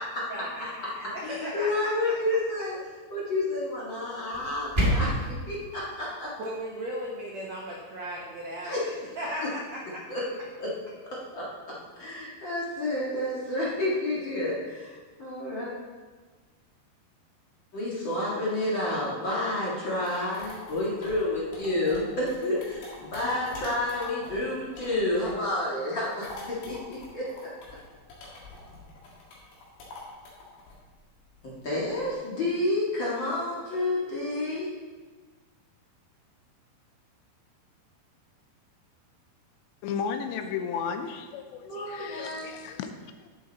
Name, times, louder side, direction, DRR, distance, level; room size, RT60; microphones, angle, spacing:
voice 1, 0.3-1.9 6.4-10.0 12.0-12.1, equal, 80° right, -3 dB, 1.5 m, -36 dB
voice 2, 1.2-2.8 3.1-6.3 8.6-8.8 9.4-9.5 10.1-10.3 10.6-10.7 11.3-15.7 17.7-22.6 23.1-27.5 31.4-34.7 41.6-42.5, left 1 dB, 50° left, -6 dB, 1.4 m, -30 dB
sound 1, 4.3-5.3, equal, 60° right, 0.5 m, -26 dB
sound 2, 19.7-25.5 25.9-32.1, left 2 dB, 65° left, 4.1 m, -45 dB
voice 3, 39.8-42.9, left 6 dB, 85° left, 7 dB, 2.9 m, -34 dB
11.0 x 7.8 x 4.1 m, 1.4 s
omnidirectional pair, 5.1 m